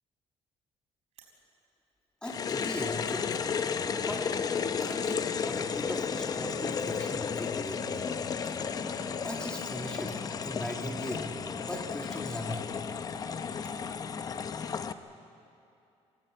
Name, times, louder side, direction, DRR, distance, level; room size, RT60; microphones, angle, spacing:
sound 1, 1.0-1.4 2.0-2.2 2.5-3.0 3.7-3.8 4.7-5.0 6.0-6.1 6.3-6.4 6.9-7.2 8.3-9.7 9.9-10.3 11.0-11.1 11.6-11.9 12.8-12.9 13.1-13.2 13.4-13.9, right 8 dB, 65° right, 5.0 m, -58 dB
sound 2, 2.2-14.9, left 6 dB, 30° left, 0.7 m, -33 dB
voice 1, 2.2-3.4 3.9-4.2 4.8-8.1 9.2-10.2 10.4-12.7, left 1 dB, 5° left, 1 dB, 2.2 m, -39 dB
29.0 x 15.5 x 8.8 m, 2.7 s
cardioid pair, 170°, 12 cm